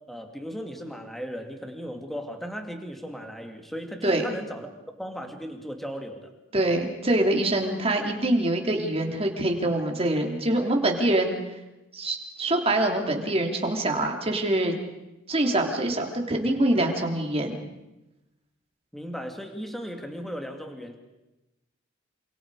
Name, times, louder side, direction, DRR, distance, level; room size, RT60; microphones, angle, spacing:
voice 1, 0.1-4.7 5.0-6.3 18.9-20.9, equal, ahead, 3 dB, 2.6 m, -36 dB
voice 2, 6.5-11.3 11.9-14.7 15.3-17.6, right 1 dB, 30° right, 2 dB, 3.3 m, -24 dB
28.5 x 27.0 x 5.0 m, 0.98 s
head